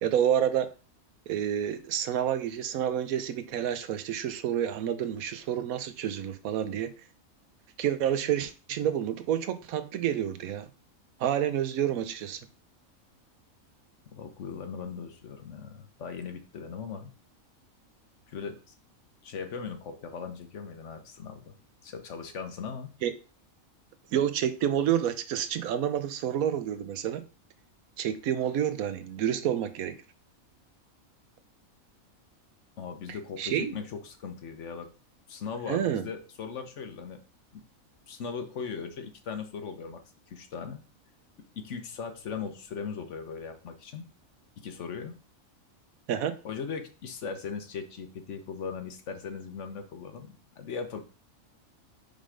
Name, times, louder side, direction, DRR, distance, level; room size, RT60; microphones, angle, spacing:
voice 1, 0.0-0.7 1.3-6.9 7.8-10.7 11.2-12.4 23.0-23.1 24.1-27.2 28.0-30.0 33.4-33.7 35.7-36.0 46.1-46.3, right 10 dB, 85° right, 1.1 m, -29 dB
voice 2, 14.1-17.1 18.3-18.7 19.2-21.5 21.8-22.9 32.8-34.9 35.3-37.2 37.5-37.6 38.1-40.0 40.3-40.8 41.6-44.1 44.6-45.1 46.4-51.0, left 6 dB, 60° left, 1.1 m, -38 dB
5.4 x 3.7 x 5.0 m
omnidirectional pair, 1.4 m